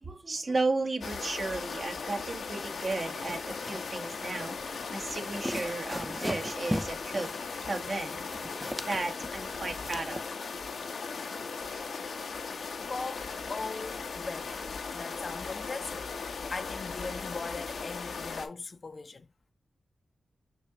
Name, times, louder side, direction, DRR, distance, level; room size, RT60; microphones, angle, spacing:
voice 1, 0.0-7.3 7.6-8.3 8.8-10.2, right 3 dB, 50° right, 1.2 m, -34 dB
sound 1, 1.0-18.5, left 5 dB, 80° left, 0.9 m, -38 dB
sound 2, 2.8-10.3, equal, ahead, 0.4 m, -40 dB
voice 2, 12.9-14.6 14.9-16.1 16.5-19.3, left 3 dB, 50° left, 0.6 m, -39 dB
6.1 x 2.8 x 2.9 m
cardioid pair, 55°, 0 cm